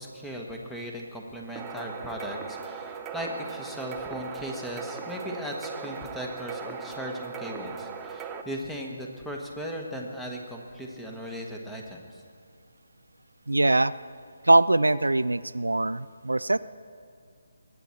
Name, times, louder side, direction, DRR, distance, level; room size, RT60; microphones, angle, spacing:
voice 1, 0.0-12.2, equal, 5° left, 0 dB, 1.3 m, -37 dB
sound 1, 1.6-8.4, right 6 dB, 15° right, 0.7 m, -39 dB
voice 2, 13.5-13.9 14.4-16.6, right 2 dB, 80° right, 15 dB, 0.3 m, -22 dB
21.5 x 9.3 x 4.5 m, 2.3 s
figure-of-eight pair, 145°, 0 cm